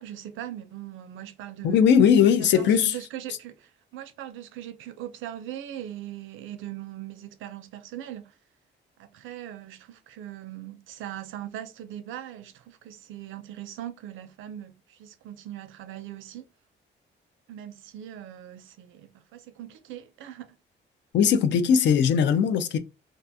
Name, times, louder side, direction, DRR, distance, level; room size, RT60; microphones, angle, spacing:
voice 1, 0.0-2.2 2.5-8.3 9.0-16.5 17.5-20.6, right 11 dB, 80° right, 0.4 m, -40 dB
voice 2, 1.6-3.0 21.1-22.8, left 7 dB, 65° left, 0.4 m, -19 dB
2.4 x 2.2 x 2.6 m
cardioid pair, 90°, 20 cm